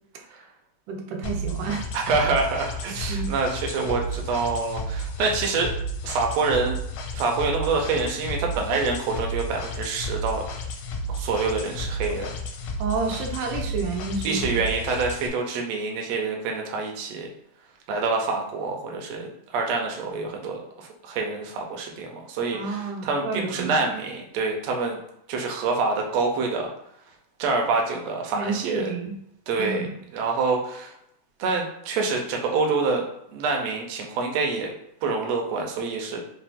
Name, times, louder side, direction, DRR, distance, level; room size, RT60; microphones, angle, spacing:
voice 1, 0.9-1.9 3.1-3.3 12.8-14.6 22.5-23.8 28.3-29.2 29.6-29.9, right 4 dB, 90° right, 2 dB, 2.2 m, -30 dB
sound 1, 1.2-15.3, equal, 85° left, 2.1 m, -32 dB
voice 2, 1.9-5.7 6.0-6.8 7.1-10.4 11.1-12.3 14.2-17.3 17.9-25.0 25.3-26.7 27.4-28.9 29.5-29.8 30.1-30.9 31.4-34.7 35.0-36.2, right 4 dB, 70° right, 1 dB, 1.7 m, -26 dB
5.9 x 2.4 x 3.5 m, 0.77 s
omnidirectional pair, 3.6 m